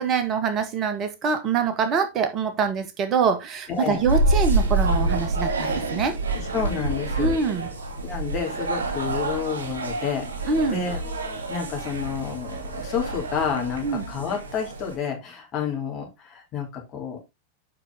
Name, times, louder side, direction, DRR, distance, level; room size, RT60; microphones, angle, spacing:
voice 1, 0.0-6.1 7.2-7.7 10.5-10.8 13.8-14.0, right 5 dB, 30° right, 1.6 m, -24 dB
voice 2, 3.7-4.1 6.3-7.4 8.0-11.0 11.5-17.2, left 7 dB, 30° left, 3.5 m, -30 dB
sound 1, 3.8-14.9, right 2 dB, 70° right, 2.6 m, -27 dB
7.7 x 6.4 x 3.7 m
figure-of-eight pair, 90°, 0 cm